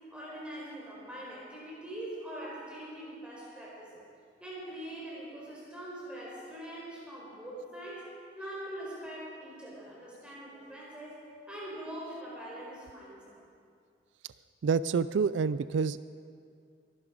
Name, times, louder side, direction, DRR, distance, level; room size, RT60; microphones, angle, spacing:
voice 1, 0.1-4.0 4.4-8.1 8.4-13.3, right 1 dB, 5° right, -6 dB, 4.3 m, -43 dB
voice 2, 14.6-16.0, right 5 dB, 85° right, 16 dB, 0.4 m, -27 dB
22.5 x 11.0 x 5.1 m, 2.3 s
head